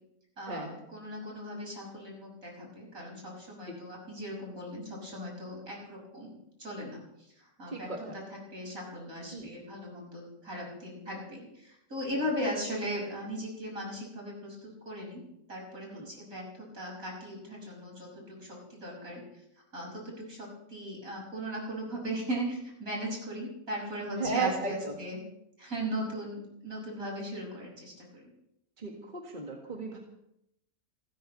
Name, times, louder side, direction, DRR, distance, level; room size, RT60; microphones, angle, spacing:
voice 1, 0.4-6.3 6.6-15.2 15.5-19.2 19.7-25.2 25.6-28.2, equal, 65° right, -2 dB, 6.8 m, -38 dB
voice 2, 7.7-8.1 9.3-9.5 15.9-16.1 19.9-20.0 24.2-24.9 28.8-30.0, right 4 dB, 30° right, 0 dB, 2.0 m, -35 dB
28.5 x 14.0 x 3.3 m, 0.81 s
omnidirectional pair, 1.6 m